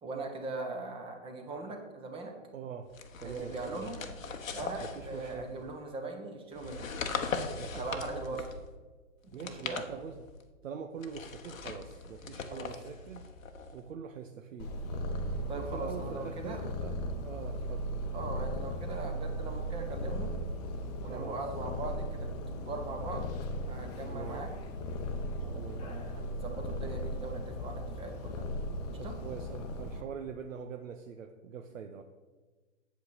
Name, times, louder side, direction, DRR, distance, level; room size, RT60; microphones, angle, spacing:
voice 1, 0.0-2.4 3.2-4.0 4.5-6.9 7.7-8.4 9.2-9.9 12.5-12.7 15.5-16.7 18.1-20.3 21.0-23.3 23.7-24.5 25.4-25.5 25.8-28.4 28.9-29.2, right 3 dB, 15° right, 3 dB, 1.0 m, -40 dB
voice 2, 2.5-2.9 3.2-3.9 4.8-5.6 7.6-8.2 9.3-10.3 10.6-13.3 13.7-14.7 15.5-16.9 17.2-18.0 21.0-21.4 24.1-24.4 25.5-25.9 29.0-32.0, right 7 dB, 75° right, 6 dB, 0.8 m, -43 dB
sound 1, 2.9-5.7 6.5-8.7 9.3-10.4 11.0-13.8, left 5 dB, 85° left, 1.1 m, -40 dB
Purr, 14.6-30.0, equal, 30° left, 0.8 m, -37 dB
8.2 x 8.1 x 4.0 m, 1.3 s
hypercardioid pair, 135°, 39 cm